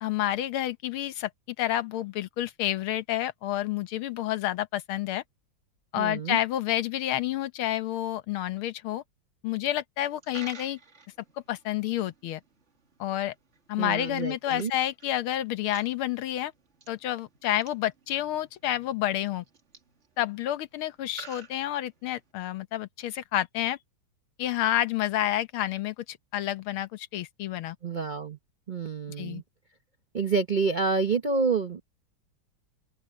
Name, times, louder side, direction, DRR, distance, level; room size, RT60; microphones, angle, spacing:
voice 1, 0.0-1.3 1.6-5.2 5.9-9.0 9.4-10.8 11.5-12.4 13.0-13.3 13.7-16.5 16.9-19.4 20.2-23.8 24.4-27.8 29.2-29.4, left 13 dB, 85° left, 1.8 m, -29 dB
voice 2, 6.0-6.4 13.8-14.7 27.8-28.4 28.7-29.4 30.1-31.8, right 4 dB, 70° right, 0.4 m, -28 dB
Coin (dropping), 10.0-22.3, right 5 dB, 35° right, 1.9 m, -53 dB
open air
omnidirectional pair, 2.3 m